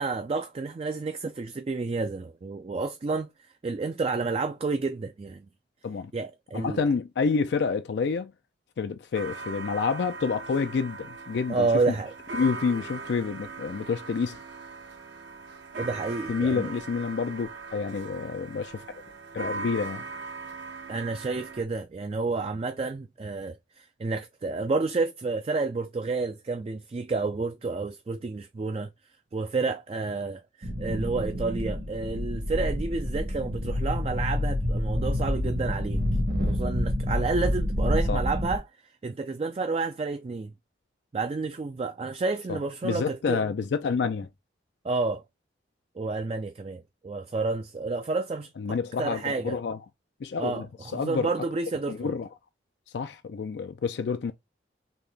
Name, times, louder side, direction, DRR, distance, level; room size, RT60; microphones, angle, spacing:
voice 1, 0.0-3.3 3.6-5.5 6.1-6.8 11.5-12.1 15.8-16.7 20.9-28.9 29.3-36.0 36.5-38.6 39.0-40.5 41.1-43.4 44.8-45.2 46.0-49.6 50.4-52.1, right 3 dB, 30° right, 0.3 m, -30 dB
voice 2, 6.5-8.3 8.8-11.9 12.3-14.4 16.3-18.8 19.3-20.0 38.1-38.2 42.5-44.3 48.6-49.8 50.2-51.3 51.9-52.3 52.9-54.3, left 5 dB, 65° left, 0.4 m, -28 dB
sound 1, 9.1-21.6, right 4 dB, 80° right, 1.0 m, -40 dB
sound 2, 30.6-38.6, left 1 dB, 55° right, 1.1 m, -28 dB
4.0 x 2.8 x 3.3 m
head